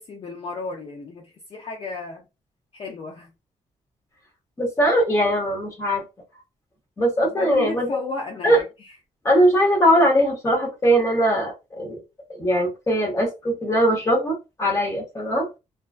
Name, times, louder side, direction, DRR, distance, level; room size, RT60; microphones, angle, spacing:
voice 1, 0.0-2.3 2.7-3.3 7.2-8.9, left 3 dB, 45° left, 0.5 m, -34 dB
voice 2, 4.6-6.0 7.0-8.0 8.4-8.6 9.2-12.0 12.3-15.5, equal, 20° left, 0.9 m, -20 dB
2.3 x 2.3 x 2.3 m
wide cardioid pair, 155°, 13 cm